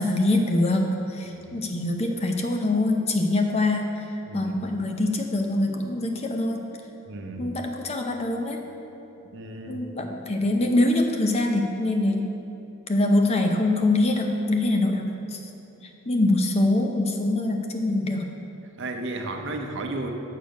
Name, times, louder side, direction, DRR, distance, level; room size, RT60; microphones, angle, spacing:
voice 1, 0.0-3.9 4.3-6.6 7.4-8.6 9.7-12.2 12.9-15.4 16.1-18.3, left 2 dB, 30° left, 3 dB, 0.6 m, -24 dB
voice 2, 7.1-7.5 9.3-9.8 18.8-20.1, right 2 dB, 55° right, 4 dB, 0.7 m, -33 dB
6.8 x 6.6 x 5.2 m, 2.9 s
head